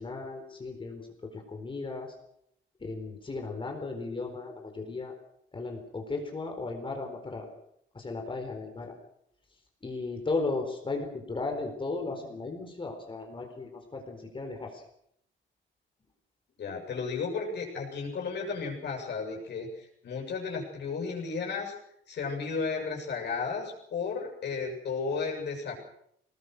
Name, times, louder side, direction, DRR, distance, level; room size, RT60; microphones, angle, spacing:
voice 1, 0.0-2.1 2.8-5.1 5.5-7.5 7.9-8.9 9.8-14.8, left 3 dB, 25° left, 3 dB, 4.2 m, -36 dB
voice 2, 16.6-21.8 22.1-25.8, left 5 dB, 55° left, 0 dB, 7.1 m, -34 dB
24.5 x 20.0 x 6.6 m, 0.72 s
cardioid pair, 140°, 21 cm